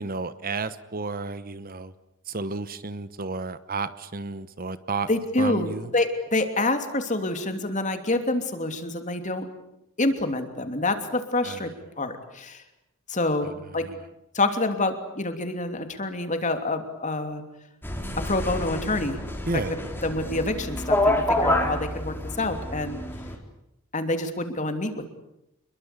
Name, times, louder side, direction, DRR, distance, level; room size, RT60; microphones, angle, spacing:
voice 1, 0.0-1.9 2.3-5.1 5.4-5.9 11.4-11.7 13.7-14.1 19.5-19.7, right 3 dB, 40° right, 14 dB, 1.0 m, -32 dB
voice 2, 5.1-9.5 10.0-11.7 12.0-12.6 13.1-13.8 14.3-17.4 18.2-19.2 20.0-23.0 23.9-25.1, left 2 dB, 35° left, 7 dB, 3.0 m, -27 dB
sound 1, 17.8-23.4, left 1 dB, 10° left, 4.0 m, -28 dB
28.0 x 22.5 x 8.5 m, 0.83 s
head